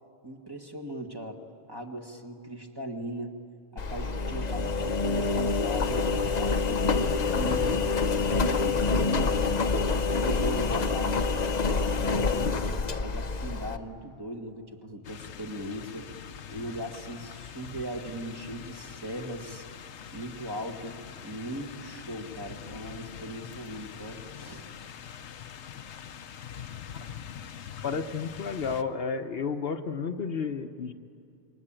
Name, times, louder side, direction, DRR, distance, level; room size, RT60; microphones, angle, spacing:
voice 1, 0.2-1.4 1.7-3.4 3.7-7.8 8.2-11.7 11.9-16.1 16.5-19.7 20.1-21.0 21.2-24.7, right 1 dB, 20° right, 2 dB, 1.8 m, -39 dB
Engine, 3.8-13.8, left 4 dB, 40° left, 0.9 m, -27 dB
sound 1, 15.0-28.8, left 8 dB, 85° left, 1.1 m, -44 dB
voice 2, 27.8-30.9, left 5 dB, 60° left, 7 dB, 1.1 m, -32 dB
27.0 x 22.5 x 8.9 m, 2.5 s
omnidirectional pair, 1.1 m